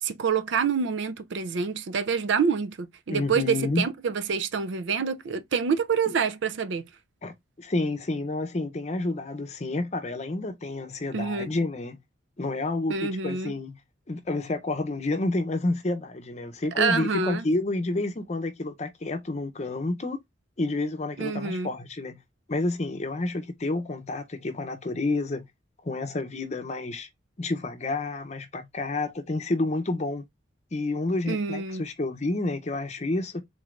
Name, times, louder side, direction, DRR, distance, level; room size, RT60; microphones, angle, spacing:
voice 1, 0.0-6.8 11.1-11.5 12.9-13.5 16.8-17.5 21.2-21.7 31.3-31.9, right 5 dB, 65° right, 0.4 m, -27 dB
voice 2, 3.1-3.9 7.2-12.0 12.4-13.8 14.1-20.2 20.6-22.2 22.5-25.5 25.8-27.1 27.4-30.2 30.7-33.4, left 2 dB, 35° left, 0.6 m, -29 dB
3.8 x 3.2 x 2.5 m
head